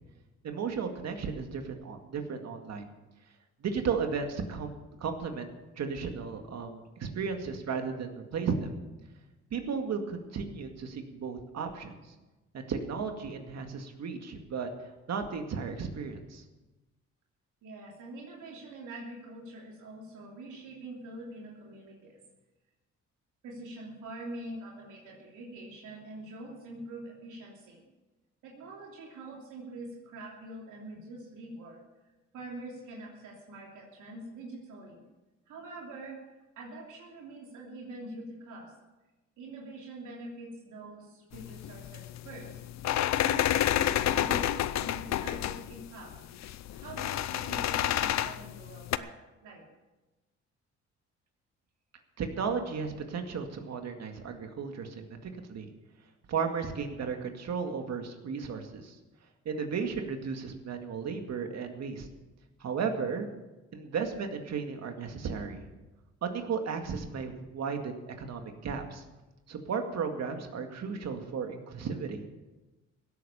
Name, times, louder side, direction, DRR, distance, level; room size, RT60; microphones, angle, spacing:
voice 1, 0.4-2.8 3.6-4.7 5.0-5.5 5.8-8.7 9.5-11.9 12.5-14.7 15.1-16.4 52.2-55.7 56.3-59.0 59.5-62.1 62.6-63.3 63.7-65.7 66.2-69.0 69.5-72.2, right 5 dB, 60° right, 5 dB, 2.1 m, -34 dB
voice 2, 17.6-22.2 23.4-27.8 28.4-31.8 32.3-35.0 35.5-38.7 39.4-46.1 46.7-49.6, right 2 dB, 80° right, -3 dB, 3.1 m, -45 dB
sound 1, 41.3-49.0, left 12 dB, 65° left, 0.6 m, -30 dB
17.0 x 8.5 x 6.9 m, 1.1 s
cardioid pair, 90°, 30 cm